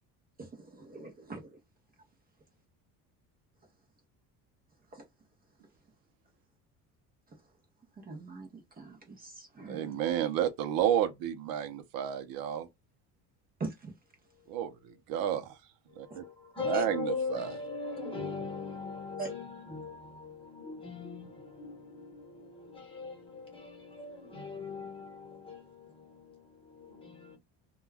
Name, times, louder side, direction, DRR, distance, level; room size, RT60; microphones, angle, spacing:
voice 1, 0.4-1.5 8.1-8.5 8.8-10.0 13.6-13.9 16.7-16.8 19.2-19.3, right 3 dB, 25° right, 0.7 m, -42 dB
voice 2, 9.7-12.7 14.5-15.4 16.2-16.3 16.7-17.5, right 10 dB, 75° right, 0.6 m, -31 dB
voice 3, 16.0-27.4, left 4 dB, 15° left, 1.1 m, -40 dB
2.3 x 2.1 x 3.2 m
cardioid pair, 145°, 36 cm